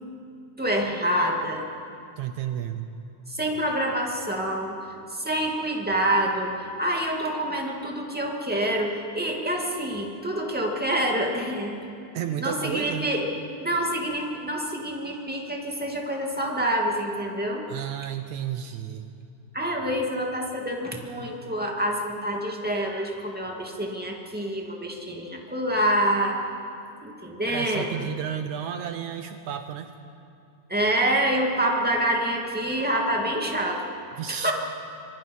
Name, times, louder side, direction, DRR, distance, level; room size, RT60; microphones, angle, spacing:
voice 1, 0.6-1.7 3.3-4.8 5.1-11.8 12.4-13.3 13.6-17.7 19.5-26.4 27.0-28.0 30.7-33.8 34.3-34.5, right 1 dB, 5° right, 0 dB, 1.7 m, -27 dB
voice 2, 2.2-2.9 12.1-13.1 17.7-19.1 27.5-29.9 34.2-34.5, right 9 dB, 70° right, 8 dB, 2.0 m, -32 dB
26.0 x 23.5 x 5.5 m, 2.6 s
omnidirectional pair, 3.9 m